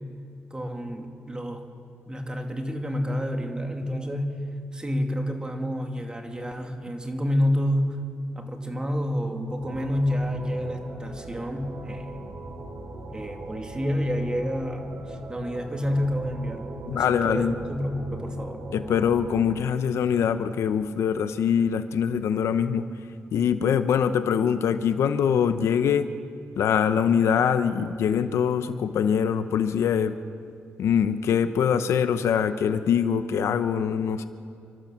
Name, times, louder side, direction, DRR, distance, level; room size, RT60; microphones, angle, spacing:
voice 1, 0.5-1.6 2.1-4.4 4.7-8.0 8.3-12.2 13.1-16.7 16.9-18.7, equal, 20° right, 3 dB, 2.5 m, -29 dB
sound 1, 9.6-19.6, right 2 dB, 75° right, 2.8 m, -40 dB
voice 2, 16.9-17.5 18.7-22.8 23.3-26.1 26.6-30.1 30.8-34.3, left 7 dB, 85° left, 10 dB, 0.9 m, -23 dB
30.0 x 12.5 x 7.4 m, 2.4 s
cardioid pair, 95°, 5 cm